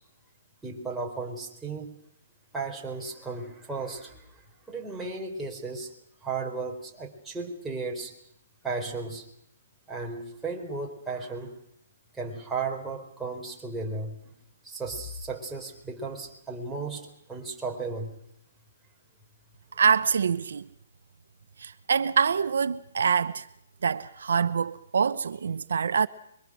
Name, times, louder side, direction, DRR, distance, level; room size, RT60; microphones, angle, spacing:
voice 1, 0.6-1.9 2.5-5.9 6.2-8.1 8.6-9.2 9.9-11.5 12.1-14.2 14.6-18.1, right 3 dB, 5° right, 4.2 m, -35 dB
voice 2, 19.7-20.7 21.6-23.5 23.8-26.1, right 6 dB, 75° right, 0.9 m, -25 dB
26.0 x 23.5 x 6.3 m
hypercardioid pair, 150°, 0 cm